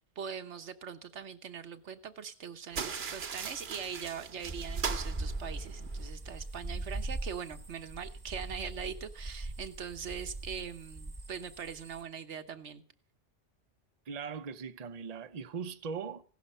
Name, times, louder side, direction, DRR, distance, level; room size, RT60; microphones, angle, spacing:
voice 1, 0.2-12.8, right 7 dB, 80° right, 1.3 m, -42 dB
sound 1, 2.7-6.1, right 6 dB, 65° right, 1.2 m, -39 dB
sound 2, 4.4-12.0, right 2 dB, 20° right, 1.2 m, -40 dB
voice 2, 14.1-16.2, right 6 dB, 40° right, 0.8 m, -39 dB
16.5 x 11.5 x 5.5 m
omnidirectional pair, 1.2 m